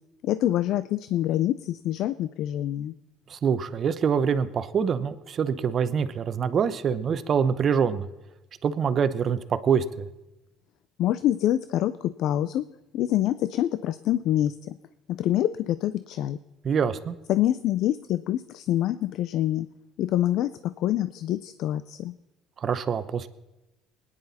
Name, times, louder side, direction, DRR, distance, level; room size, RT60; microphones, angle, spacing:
voice 1, 0.2-3.0 11.0-12.6 12.9-14.7 15.1-16.4 17.3-19.7 20.0-22.2, left 12 dB, 70° left, 14 dB, 0.4 m, -26 dB
voice 2, 3.3-8.1 8.6-10.1 16.6-17.1 22.6-23.3, right 7 dB, 45° right, 12 dB, 0.8 m, -25 dB
21.5 x 10.0 x 4.2 m, 1.0 s
cardioid pair, 95°, 0 cm